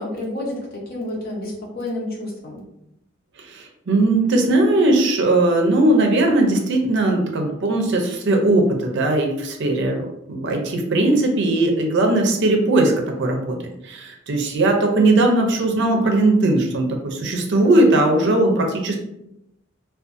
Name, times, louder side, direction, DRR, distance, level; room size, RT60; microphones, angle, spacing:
voice 1, 0.0-2.6 18.2-18.6, left 1 dB, 45° left, -4 dB, 0.8 m, -30 dB
voice 2, 3.5-13.6 13.8-19.0, right 2 dB, 60° right, 2 dB, 0.5 m, -19 dB
2.5 x 2.3 x 2.5 m, 0.83 s
head